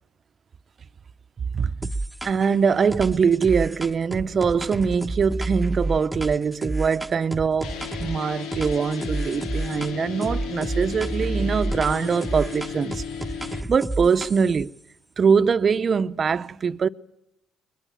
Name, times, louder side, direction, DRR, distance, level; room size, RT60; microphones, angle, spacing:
sound 1, 1.8-2.5 2.9-8.2 8.5-9.9 10.2-14.6, right 2 dB, 10° right, 1.1 m, -30 dB
voice 1, 2.2-13.0 13.7-14.7 15.2-16.9, right 6 dB, 45° right, 0.8 m, -22 dB
sound 2, 7.6-13.6, left 7 dB, 80° left, 1.3 m, -35 dB
22.0 x 21.5 x 8.8 m
supercardioid pair, 80°, 0 cm